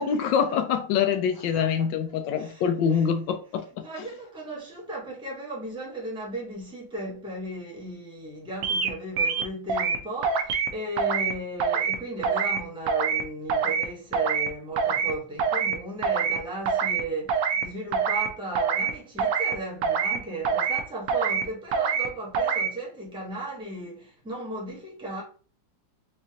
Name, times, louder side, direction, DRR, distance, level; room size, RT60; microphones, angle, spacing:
voice 1, 0.0-3.8, left 7 dB, 80° left, 1.2 m, -25 dB
voice 2, 1.3-1.7 2.1-2.6 2.9-3.0 3.8-25.2, right 1 dB, 5° right, 1.0 m, -36 dB
sound 1, 8.6-8.9 9.2-10.0 10.2-10.7 11.0-11.3 11.6-11.9 12.2-12.6 12.9-13.2 13.5-13.8 14.1-14.5 14.8-15.1 15.4-15.7 16.0-16.4 16.7-17.0 17.3-17.6 17.9-18.3 18.5-18.9 19.2-19.5 19.8-20.2 20.4-20.8 21.1-21.4 21.7-22.1 22.3-22.7, right 6 dB, 70° right, 0.8 m, -25 dB
4.5 x 2.5 x 2.8 m
omnidirectional pair, 2.0 m